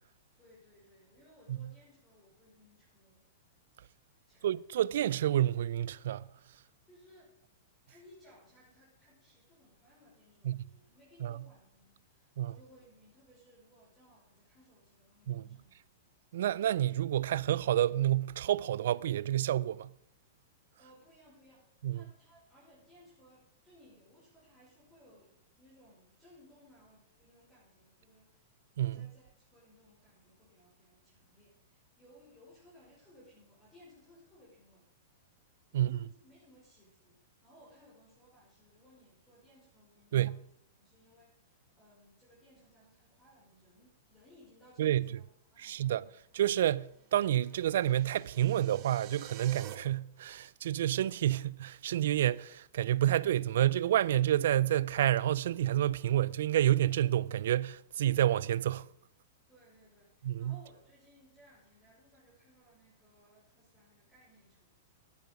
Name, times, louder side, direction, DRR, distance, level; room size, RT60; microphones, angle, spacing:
voice 1, 0.4-3.3 4.2-4.5 6.9-7.3 7.9-16.1 20.8-34.9 35.7-45.2 45.5-46.2 59.5-64.8, equal, 10° left, 5.4 m, -62 dB
voice 2, 4.4-6.2 10.4-10.6 11.2-11.3 12.4-12.5 15.3-15.4 16.3-19.9 21.8-22.0 28.8-29.0 35.7-36.0 40.1-40.4 44.8-45.1 45.6-46.0 46.3-58.9 60.3-60.6, right 12 dB, 70° right, 0.4 m, -29 dB
sound 1, 47.3-49.7, right 11 dB, 40° right, 1.4 m, -50 dB
11.5 x 10.5 x 5.2 m
hypercardioid pair, 140°, 0 cm